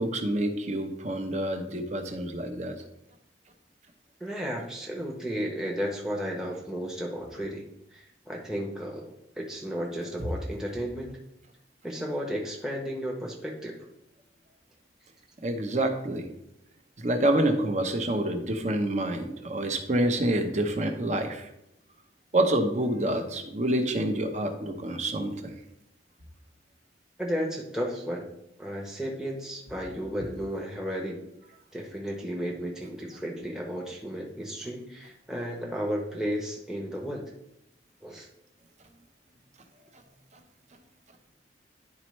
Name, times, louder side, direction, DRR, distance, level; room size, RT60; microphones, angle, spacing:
voice 1, 0.0-2.8 15.4-16.3 17.0-21.5 22.3-25.5, right 1 dB, 40° right, 5 dB, 0.8 m, -27 dB
voice 2, 4.2-7.6 7.9-11.2 11.8-13.8 27.2-28.2 28.6-31.2 31.7-37.2 38.0-38.3, equal, 5° right, -2 dB, 0.8 m, -33 dB
10.5 x 4.3 x 3.1 m, 0.82 s
head